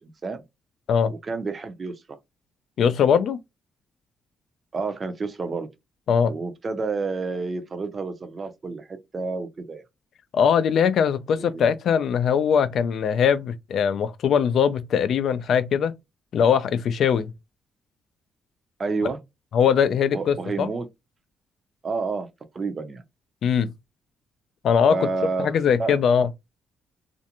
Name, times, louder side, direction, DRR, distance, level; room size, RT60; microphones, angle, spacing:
voice 1, 1.2-2.2 4.7-5.7 6.3-9.8 11.4-11.7 18.8-19.2 20.1-20.9 21.8-22.3 22.5-23.0 24.9-26.0, right 4 dB, 35° right, 0.5 m, -29 dB
voice 2, 2.8-3.4 6.1-6.3 10.3-15.9 16.3-17.3 19.5-20.7 23.4-23.7 24.6-25.0 25.4-26.3, left 7 dB, 65° left, 0.3 m, -21 dB
2.5 x 2.1 x 2.8 m
cardioid pair, 90°, 0 cm